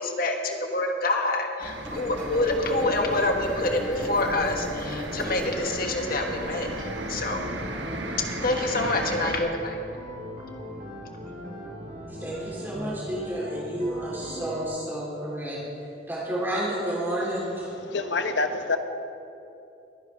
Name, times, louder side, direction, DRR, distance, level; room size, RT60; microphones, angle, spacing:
voice 1, 0.0-7.4 8.4-9.8, left 2 dB, 50° left, 3 dB, 1.4 m, -27 dB
sound 1, 1.6-9.4, right 2 dB, 80° right, 1.3 m, -36 dB
Engine, 1.8-7.3, left 1 dB, 5° left, 1.5 m, -39 dB
sound 2, 2.7-14.7, left 1 dB, 45° right, 2.2 m, -39 dB
voice 2, 12.2-15.6 16.1-17.7, right 1 dB, 10° right, -7 dB, 3.5 m, -30 dB
voice 3, 17.7-18.8, left 3 dB, 75° left, 8 dB, 0.9 m, -27 dB
21.5 x 10.0 x 3.5 m, 2.8 s
head